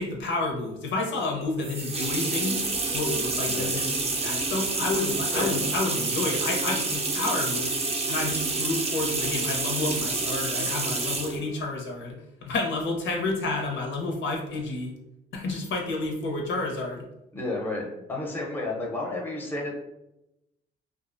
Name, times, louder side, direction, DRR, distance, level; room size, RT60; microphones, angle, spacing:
voice 1, 0.0-2.6 2.9-7.8 8.1-14.9 15.3-17.1, left 2 dB, 70° left, 1 dB, 0.6 m, -30 dB
sound 1, 1.6-11.4, right 3 dB, 30° right, 0.5 m, -28 dB
voice 2, 17.3-19.7, left 2 dB, 10° left, -1 dB, 0.6 m, -32 dB
2.4 x 2.1 x 2.5 m, 0.89 s
cardioid pair, 90°, 20 cm